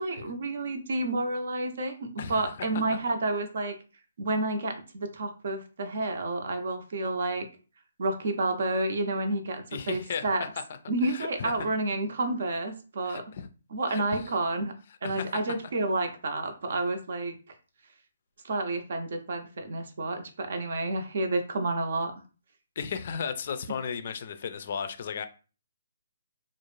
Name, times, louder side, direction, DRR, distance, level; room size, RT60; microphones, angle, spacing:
voice 1, 0.0-3.7 4.2-7.5 8.0-10.4 10.9-13.2 13.7-14.8 15.0-17.3 18.4-22.1, right 2 dB, 60° right, 0.6 m, -30 dB
voice 2, 2.2-2.8 9.7-10.6 11.1-11.7 13.0-13.5 13.9-14.3 15.0-15.4 22.8-25.3, left 6 dB, 50° left, 0.4 m, -35 dB
2.5 x 2.0 x 3.1 m
hypercardioid pair, 150°, 0 cm